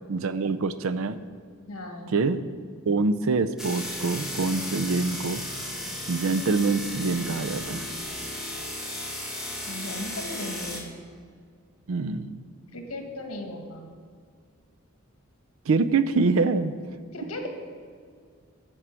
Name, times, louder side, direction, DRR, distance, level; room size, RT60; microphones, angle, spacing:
voice 1, 0.1-1.2 2.1-2.4 2.9-5.4 6.1-7.9 11.9-12.4 15.7-16.7, right 4 dB, 70° right, 12 dB, 0.5 m, -25 dB
voice 2, 1.7-2.2 9.7-10.9 12.7-13.9 17.1-17.5, left 1 dB, 80° left, 3 dB, 1.6 m, -36 dB
sound 1, 3.6-10.8, left 1 dB, ahead, 1.3 m, -35 dB
12.5 x 4.7 x 7.6 m, 2.1 s
head